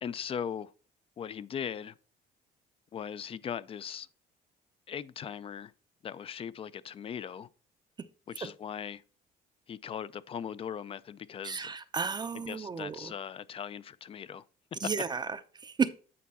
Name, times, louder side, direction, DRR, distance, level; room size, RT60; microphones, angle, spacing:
voice 1, 0.0-0.7 1.2-1.9 2.9-4.1 4.9-5.7 6.0-7.5 8.3-9.0 9.7-11.7 12.3-14.4 14.8-14.9, left 8 dB, 35° left, 0.3 m, -39 dB
voice 2, 11.4-13.1 14.8-15.9, right 5 dB, 25° right, 0.5 m, -33 dB
8.5 x 4.6 x 4.1 m
cardioid pair, 110°, 17 cm